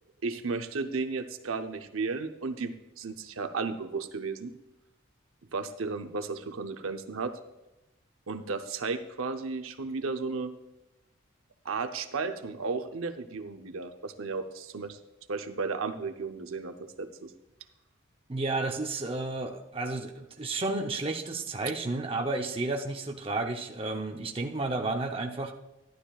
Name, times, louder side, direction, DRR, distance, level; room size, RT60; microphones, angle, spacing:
voice 1, 0.2-4.5 5.5-7.3 8.3-10.5 11.6-15.0 15.3-17.3, right 4 dB, 90° right, 7 dB, 0.7 m, -34 dB
voice 2, 18.3-25.5, right 2 dB, 25° right, 2 dB, 0.7 m, -32 dB
12.0 x 11.5 x 2.4 m, 1.0 s
head